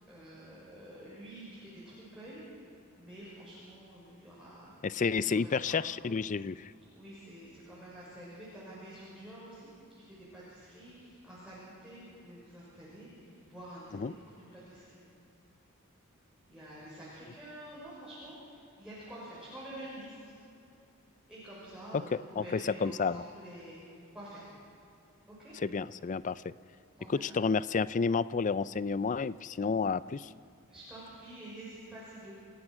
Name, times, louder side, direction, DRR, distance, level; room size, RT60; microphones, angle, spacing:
voice 1, 0.1-2.4 2.9-4.7 5.2-5.8 6.9-14.9 16.5-20.2 21.3-24.5 25.3-25.6 27.0-27.4 30.7-32.3, right 1 dB, 5° right, -9 dB, 5.9 m, -48 dB
voice 2, 4.8-6.7 14.0-14.1 22.4-23.2 25.6-26.5 27.1-30.3, left 5 dB, 35° left, 17 dB, 0.4 m, -30 dB
29.0 x 17.0 x 6.2 m, 2.7 s
head